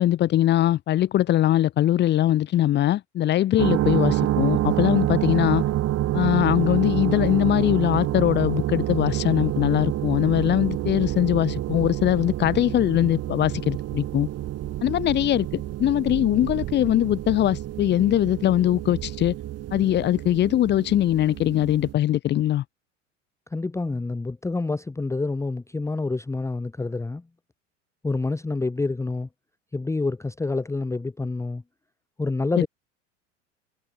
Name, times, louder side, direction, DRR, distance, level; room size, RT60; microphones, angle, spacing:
voice 1, 0.0-5.6 6.1-14.3 14.8-19.3 19.7-22.6, left 13 dB, 30° left, 0.7 m, -21 dB
sound 1, 3.6-21.9, right 13 dB, 40° right, 2.7 m, -28 dB
voice 2, 23.5-27.2 28.0-29.3 29.7-31.6 32.2-32.7, left 3 dB, 5° left, 1.0 m, -27 dB
figure-of-eight pair, 75°, 38 cm